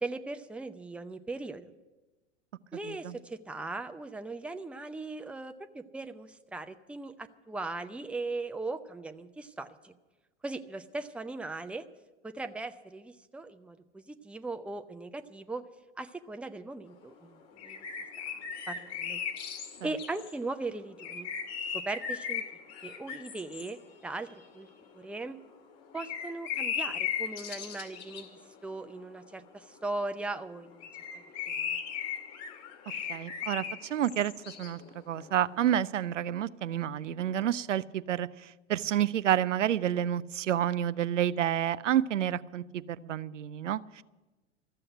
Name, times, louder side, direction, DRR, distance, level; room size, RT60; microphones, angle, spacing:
voice 1, 0.0-1.7 2.7-9.9 10.4-11.8 12.2-15.6 16.0-17.8 18.3-19.2 19.8-21.3 21.7-22.4 22.8-24.3 24.5-24.7 24.9-25.4 25.9-30.9 31.5-31.8, right 3 dB, 5° right, 9 dB, 0.6 m, -39 dB
voice 2, 2.8-3.2 19.8-19.9 33.1-34.8 35.1-44.0, right 10 dB, 85° right, 16 dB, 0.5 m, -29 dB
sound 1, 17.0-17.1 17.6-20.3 21.0-25.2 25.6-30.3 30.7-35.6, left 7 dB, 45° left, 2.3 m, -37 dB
14.0 x 7.7 x 9.9 m, 1.1 s
hypercardioid pair, 90°, 36 cm